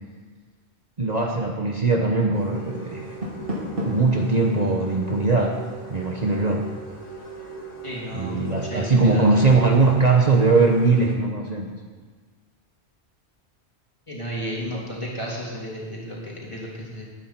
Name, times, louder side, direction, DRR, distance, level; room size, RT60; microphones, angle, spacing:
voice 1, 1.0-3.1 3.8-5.6 5.9-6.7 8.1-11.7 14.7-14.8, right 3 dB, 40° right, 0 dB, 1.1 m, -20 dB
sound 1, 2.3-11.2, right 3 dB, 75° left, 2.5 m, -39 dB
Door, 2.9-4.2, equal, 55° right, 2.9 m, -31 dB
voice 2, 7.8-9.3 14.1-17.1, equal, 25° left, -4 dB, 3.4 m, -33 dB
19.0 x 9.6 x 4.5 m, 1.5 s
omnidirectional pair, 1.1 m